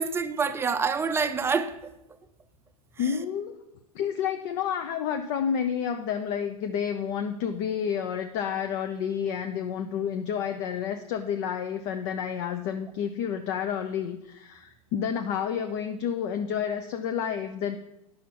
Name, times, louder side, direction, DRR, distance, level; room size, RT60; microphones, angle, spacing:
voice 1, 0.0-1.9 3.0-3.1, right 5 dB, 10° right, 0.6 m, -27 dB
voice 2, 3.0-3.6 3.9-17.8, left 8 dB, 45° left, 0.7 m, -30 dB
10.0 x 6.3 x 5.9 m
hypercardioid pair, 110°, 20 cm